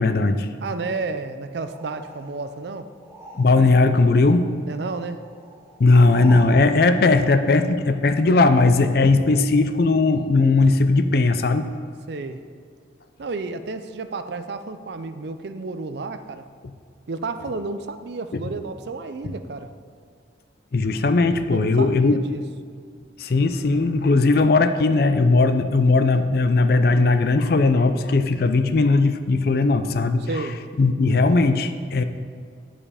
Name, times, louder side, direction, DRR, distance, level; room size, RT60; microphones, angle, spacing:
voice 1, 0.0-0.5 3.4-4.5 5.8-11.7 20.7-22.2 23.2-30.4 30.8-32.0, left 3 dB, 50° left, 10 dB, 0.4 m, -18 dB
voice 2, 0.6-2.9 4.7-5.2 12.1-12.4 13.2-16.4 17.1-19.7 21.5-22.4 30.2-30.6, right 3 dB, 60° right, 10 dB, 0.5 m, -31 dB
sound 1, 1.6-3.9 4.1-6.6, equal, 15° right, 1.0 m, -43 dB
9.7 x 5.0 x 5.0 m, 2.1 s
head